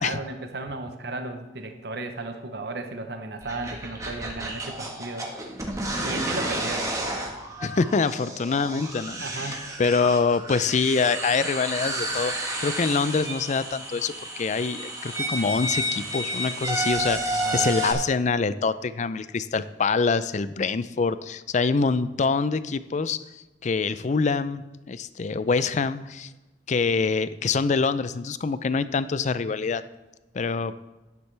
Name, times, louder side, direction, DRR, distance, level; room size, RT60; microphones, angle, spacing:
voice 1, 0.0-5.3 6.0-6.9 9.2-9.6 17.3-17.8, right 2 dB, 65° right, 6 dB, 0.9 m, -34 dB
sound 1, 3.4-17.9, right 1 dB, 20° right, 1.4 m, -31 dB
voice 2, 7.6-23.2 23.6-26.3 26.7-29.8 30.3-30.8, left 4 dB, 40° left, 14 dB, 0.4 m, -25 dB
11.5 x 9.7 x 3.3 m, 1.1 s
head